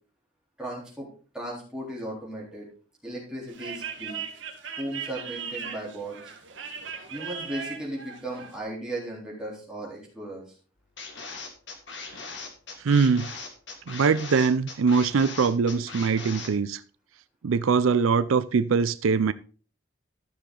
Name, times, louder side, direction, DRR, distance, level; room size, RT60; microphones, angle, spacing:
voice 1, 0.6-1.1 1.3-2.7 3.0-4.2 4.8-6.2 7.1-10.5, right 1 dB, 5° right, 3.6 m, -36 dB
sound 1, 3.5-8.6, right 6 dB, 65° right, 1.7 m, -38 dB
sound 2, 11.0-16.5, left 4 dB, 60° left, 1.9 m, -39 dB
voice 2, 12.8-13.3 13.9-16.8 17.4-19.3, right 5 dB, 85° right, 0.5 m, -22 dB
13.0 x 6.6 x 3.8 m
head